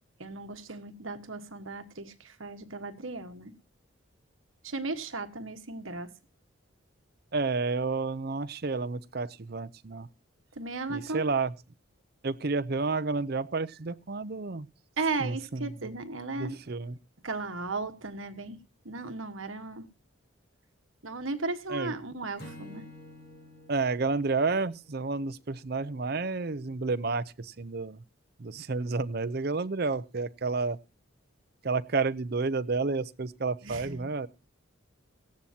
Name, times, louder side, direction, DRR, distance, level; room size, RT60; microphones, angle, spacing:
voice 1, 0.2-3.5 4.6-6.1 10.5-11.2 15.0-16.6 17.2-19.9 21.0-22.9 33.6-34.1, right 3 dB, 70° right, 1.4 m, -36 dB
voice 2, 7.3-10.1 10.9-11.5 12.2-14.7 15.2-15.6 16.4-16.9 21.7-22.0 23.7-28.0 28.4-30.8 31.6-34.3, right 4 dB, 50° right, 0.6 m, -30 dB
Acoustic guitar / Strum, 22.4-25.7, left 1 dB, 50° left, 4.0 m, -50 dB
18.0 x 14.0 x 2.8 m
head